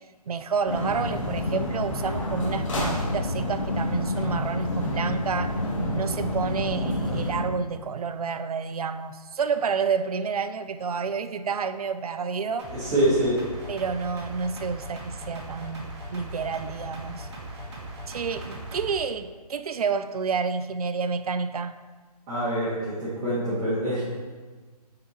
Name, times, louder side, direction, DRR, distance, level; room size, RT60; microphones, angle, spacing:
voice 1, 0.3-5.5 5.9-12.7 13.7-17.3 18.1-21.8, right 5 dB, 65° right, 12 dB, 0.5 m, -29 dB
sound 1, 0.7-7.4, left 1 dB, 50° left, 2.0 m, -28 dB
sound 2, 12.6-18.9, right 1 dB, 40° right, 1.6 m, -39 dB
voice 2, 12.7-13.4 22.3-24.0, right 1 dB, 20° right, -14 dB, 2.0 m, -25 dB
8.4 x 4.7 x 3.2 m, 1.4 s
hypercardioid pair, 165°, 21 cm